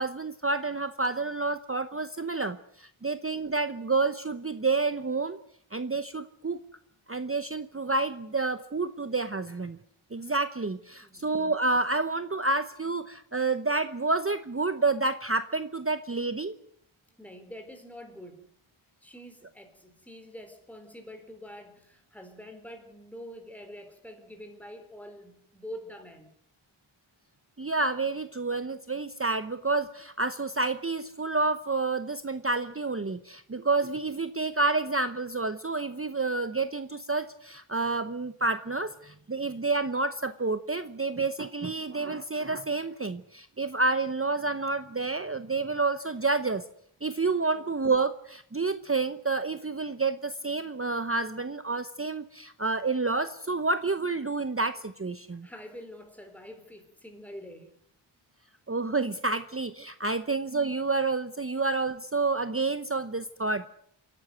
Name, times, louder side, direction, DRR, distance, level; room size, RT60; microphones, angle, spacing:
voice 1, 0.0-5.4 5.7-6.6 7.1-9.8 10.1-16.6 27.6-46.6 47.0-55.5 58.7-63.7, right 3 dB, 25° right, 11 dB, 0.8 m, -29 dB
voice 2, 11.0-11.4 17.2-18.5 19.0-26.3 47.5-47.8 55.3-57.8 60.2-60.4, equal, 5° left, 4 dB, 4.2 m, -46 dB
27.0 x 11.5 x 9.3 m, 0.68 s
wide cardioid pair, 65°, 50 cm